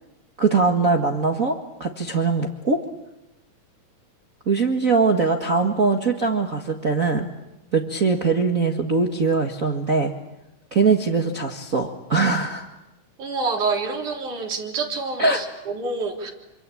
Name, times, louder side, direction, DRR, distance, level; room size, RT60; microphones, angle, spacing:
voice 1, 0.4-2.8 4.4-7.3 7.7-10.1 10.7-12.6 15.2-15.4, right 4 dB, 35° right, 2 dB, 1.6 m, -21 dB
voice 2, 13.2-16.3, right 4 dB, 65° right, 1 dB, 4.9 m, -27 dB
27.0 x 25.5 x 8.6 m, 0.95 s
omnidirectional pair, 3.8 m